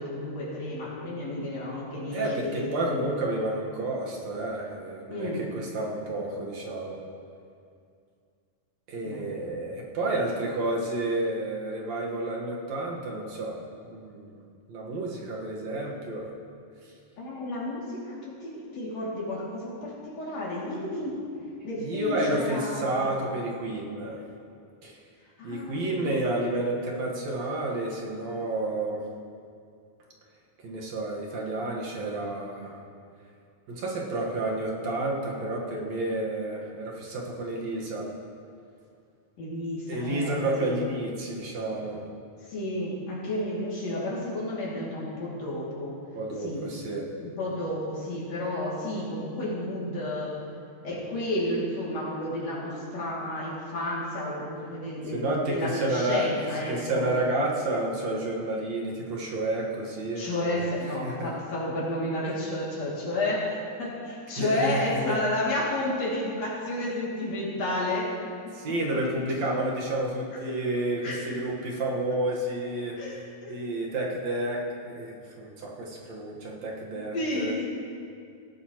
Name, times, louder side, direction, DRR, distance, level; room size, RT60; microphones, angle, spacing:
voice 1, 0.0-2.7 5.1-5.5 9.0-9.3 17.2-21.2 21.6-22.9 25.4-26.0 39.4-40.8 42.5-46.0 46.4-46.6 47.2-50.3 50.8-57.1 60.2-68.1 68.7-69.2 70.3-70.4 71.0-71.2 73.0-73.6 76.9-77.7, left 1 dB, 60° left, -6 dB, 3.7 m, -31 dB
voice 2, 2.1-7.0 8.9-14.4 14.7-16.3 21.8-24.2 24.8-25.0 25.4-29.0 30.6-32.8 33.7-38.1 39.9-42.0 46.2-47.1 55.1-56.3 56.7-60.6 60.9-61.3 64.4-65.2 68.5-73.0 73.5-77.5, right 2 dB, 65° right, -3 dB, 2.6 m, -30 dB
18.0 x 12.5 x 3.0 m, 2.4 s
omnidirectional pair, 3.5 m